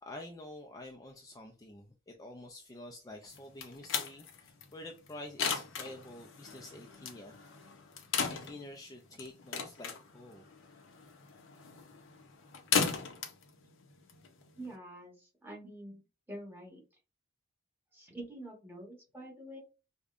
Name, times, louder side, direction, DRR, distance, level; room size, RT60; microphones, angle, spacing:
voice 1, 0.0-7.4 8.3-10.5, left 1 dB, 15° left, 0.4 m, -48 dB
sound 1, 3.3-14.7, left 6 dB, 60° left, 0.7 m, -37 dB
voice 2, 14.5-16.8 17.9-19.6, right 1 dB, 10° right, 1.2 m, -47 dB
5.0 x 2.2 x 2.5 m
head